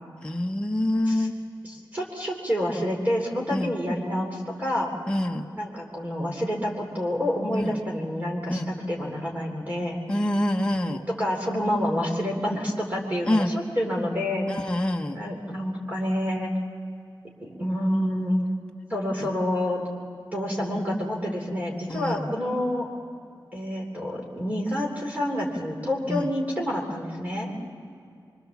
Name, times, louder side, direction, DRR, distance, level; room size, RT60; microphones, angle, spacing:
voice 1, 0.2-1.3 3.5-3.7 5.1-5.5 7.5-7.7 8.5-8.7 10.1-11.0 13.2-13.5 14.5-15.2 21.9-22.3 26.1-26.3, left 1 dB, 10° left, 1 dB, 1.0 m, -26 dB
voice 2, 1.6-4.9 5.6-10.0 10.9-14.5 15.1-16.5 17.4-18.4 18.9-19.8 20.3-22.9 23.5-27.5, equal, 20° right, -1 dB, 3.3 m, -28 dB
25.0 x 24.0 x 7.2 m, 2.4 s
wide cardioid pair, 150°, 8 cm